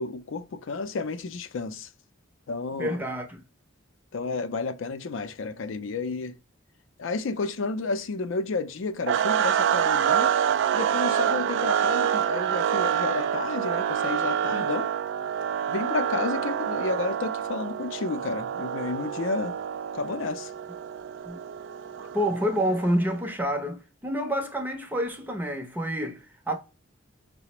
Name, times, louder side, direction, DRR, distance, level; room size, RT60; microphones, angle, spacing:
voice 1, 0.0-1.9 2.5-3.0 4.1-6.3 7.0-10.3 10.7-14.9 15.7-19.5 19.9-20.5, left 3 dB, 65° left, 0.4 m, -31 dB
voice 2, 2.8-3.4 21.2-21.4 22.0-26.6, equal, 10° right, 0.6 m, -28 dB
sound 1, 9.1-23.2, right 8 dB, 65° right, 0.3 m, -27 dB
5.6 x 2.0 x 2.9 m
head